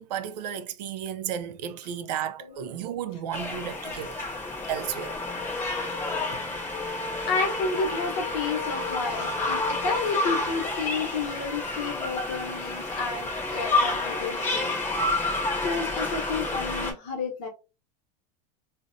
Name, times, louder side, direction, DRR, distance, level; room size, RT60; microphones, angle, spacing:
voice 1, 0.0-4.2 4.7-5.1, right 9 dB, 75° right, 0.4 m, -33 dB
sound 1, 3.3-16.9, left 2 dB, 10° left, 0.5 m, -29 dB
voice 2, 6.9-14.7 15.2-17.5, left 4 dB, 40° left, 0.9 m, -31 dB
3.9 x 2.1 x 2.5 m
supercardioid pair, 165°, 21 cm